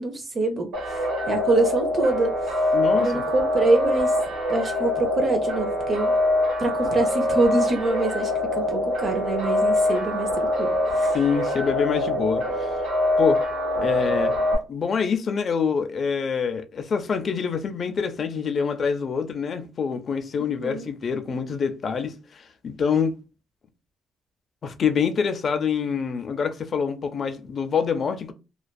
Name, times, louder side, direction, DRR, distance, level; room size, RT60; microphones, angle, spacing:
voice 1, 0.0-2.6 3.0-4.1 4.5-6.1 6.6-11.2 20.5-20.9, right 2 dB, 40° right, 0.6 m, -25 dB
sound 1, 0.7-14.6, left 1 dB, 75° right, 1.4 m, -24 dB
voice 2, 2.7-3.2 11.1-12.7 13.2-13.4 13.8-14.3 14.7-23.1 24.6-28.3, left 6 dB, 50° left, 0.4 m, -26 dB
2.5 x 2.3 x 2.2 m
cardioid pair, 90°, 0 cm